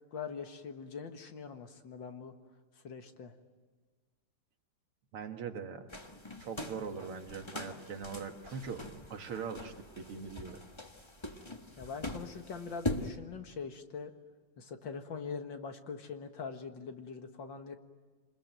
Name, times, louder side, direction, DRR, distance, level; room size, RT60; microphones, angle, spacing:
voice 1, 0.1-2.3 2.8-3.3 11.8-14.1 14.6-17.8, left 5 dB, 60° left, 6 dB, 2.2 m, -43 dB
voice 2, 5.1-5.9 6.4-8.8 9.1-10.6, right 6 dB, 85° right, 5 dB, 2.6 m, -41 dB
sound 1, 5.9-13.1, left 1 dB, 15° left, 1.3 m, -42 dB
28.0 x 21.0 x 9.2 m, 1.5 s
omnidirectional pair, 2.4 m